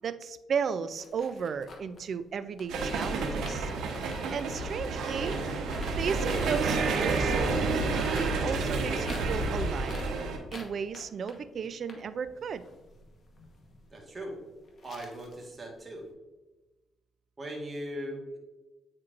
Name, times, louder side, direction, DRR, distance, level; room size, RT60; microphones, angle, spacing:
voice 1, 0.0-3.7 4.3-5.4 6.0-10.0 10.5-12.6, right 6 dB, 55° right, 13 dB, 0.4 m, -34 dB
sound 1, 1.0-8.3 8.6-15.7 16.0-16.1, left 3 dB, 45° left, 1.1 m, -49 dB
sound 2, 2.7-10.4, right 3 dB, 80° right, 1.0 m, -30 dB
voice 2, 13.9-14.4 14.8-16.1 17.4-18.4, equal, 25° right, 0 dB, 1.5 m, -39 dB
8.5 x 4.4 x 2.5 m, 1.1 s
cardioid pair, 90°, 0 cm